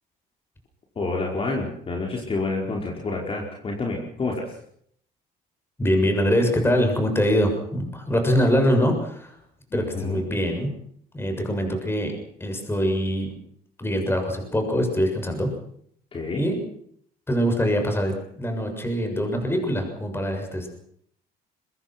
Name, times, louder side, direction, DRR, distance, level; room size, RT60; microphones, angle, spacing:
voice 1, 0.9-4.5 9.7-10.2 16.1-16.4, left 3 dB, 35° left, -1 dB, 5.1 m, -28 dB
voice 2, 5.8-9.3 9.7-10.7 11.1-12.1 12.4-13.3 13.8-15.5 16.4-16.6 17.3-20.7, equal, 15° left, 4 dB, 7.0 m, -23 dB
23.0 x 21.5 x 6.1 m, 0.66 s
cardioid pair, 110°, 17 cm